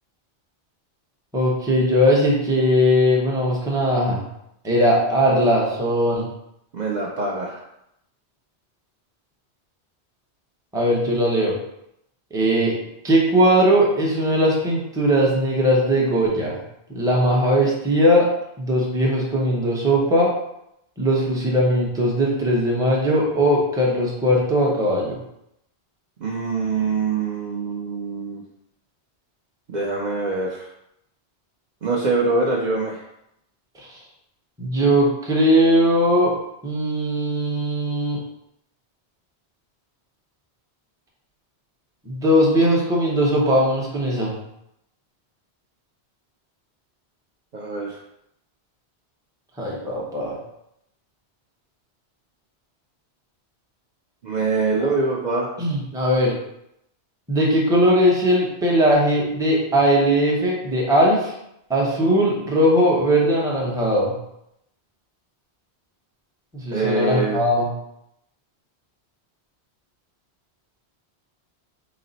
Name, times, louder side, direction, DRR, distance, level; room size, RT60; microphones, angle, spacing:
voice 1, 1.3-4.3 4.6-6.3 10.7-11.6 12.3-12.7 13.0-16.6 16.9-18.3 18.6-20.3 21.0-25.2 33.8-34.0 34.6-36.3 36.6-38.2 42.0-44.4 49.6-50.3 54.8-54.9 55.6-56.4 57.3-61.3 61.7-64.2 66.5-67.7, equal, 5° right, -3 dB, 0.6 m, -19 dB
voice 2, 6.7-7.6 26.2-28.4 29.7-30.7 31.8-33.0 47.5-48.0 54.2-55.5 66.7-67.4, right 3 dB, 55° right, -3 dB, 0.5 m, -24 dB
4.0 x 2.0 x 3.9 m, 0.81 s
omnidirectional pair, 1.1 m